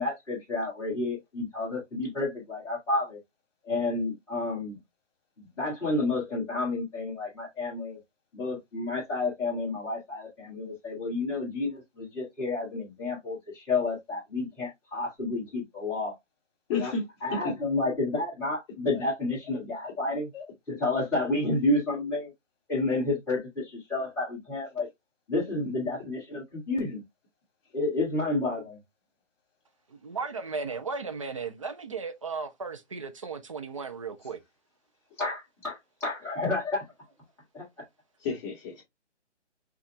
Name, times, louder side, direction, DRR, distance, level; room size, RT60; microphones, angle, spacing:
voice 1, 0.0-3.2 3.6-4.8 5.4-8.0 8.3-16.2 16.8-16.9 17.2-20.3 20.7-22.3 22.7-24.9 25.3-27.0 27.7-28.8 35.2-36.8 37.5-37.8, left 2 dB, 5° left, 1.8 m, -30 dB
voice 2, 16.7-17.1 17.4-17.5 18.9-19.0 19.8-19.9 20.3-20.4 38.2-38.8, left 4 dB, 20° left, 1.9 m, -31 dB
voice 3, 29.9-34.4, right 4 dB, 30° right, 0.5 m, -35 dB
5.5 x 2.5 x 3.2 m
figure-of-eight pair, 150°, 36 cm